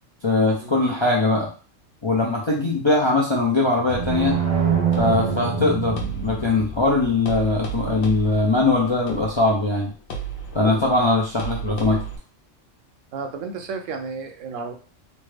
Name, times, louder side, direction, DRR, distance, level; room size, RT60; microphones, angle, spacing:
voice 1, 0.2-1.5 2.0-4.4 5.0-9.9 10.5-12.0, left 2 dB, 40° left, -3 dB, 0.4 m, -21 dB
sound 1, 3.8-6.8, right 6 dB, 40° right, 0.6 m, -24 dB
sound 2, 3.9-12.2, right 4 dB, 65° left, 1.0 m, -34 dB
voice 2, 13.1-14.7, right 4 dB, 90° right, 5 dB, 1.0 m, -32 dB
3.2 x 2.1 x 3.2 m, 0.38 s
omnidirectional pair, 1.3 m